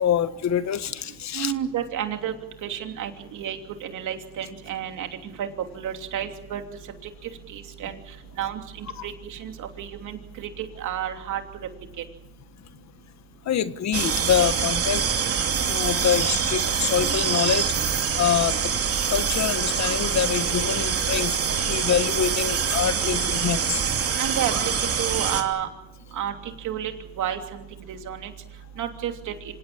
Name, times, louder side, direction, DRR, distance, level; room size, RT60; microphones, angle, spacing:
voice 1, 0.0-1.5 9.0-9.1 13.5-15.0 15.6-17.7 18.2-18.7 19.1-21.4 21.7-23.8, left 9 dB, 65° left, 12 dB, 1.5 m, -25 dB
voice 2, 1.3-2.3 2.6-5.1 5.4-5.5 5.7-6.6 7.5-8.0 8.4-11.4 24.2-25.7 26.1-26.3 26.6-26.9 27.2-28.3 28.8-29.3, right 10 dB, 80° right, 5 dB, 3.1 m, -31 dB
sound 1, 13.9-25.4, right 7 dB, 50° right, 2.9 m, -25 dB
26.0 x 18.0 x 8.8 m, 0.89 s
cardioid pair, 90°, 30 cm